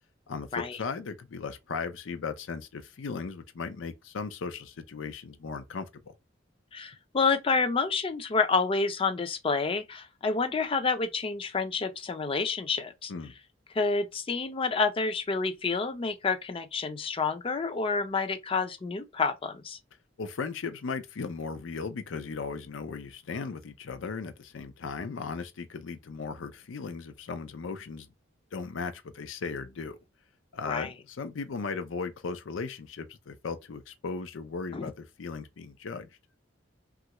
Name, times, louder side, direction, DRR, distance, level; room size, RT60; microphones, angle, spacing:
voice 1, 0.3-6.0 13.1-13.3 20.2-28.1 28.5-30.0 30.5-36.1, left 4 dB, 80° left, 0.5 m, -37 dB
voice 2, 6.7-13.1 13.7-19.8 30.7-30.9 34.7-34.9, left 4 dB, 30° left, 0.4 m, -29 dB
3.1 x 2.4 x 2.9 m
head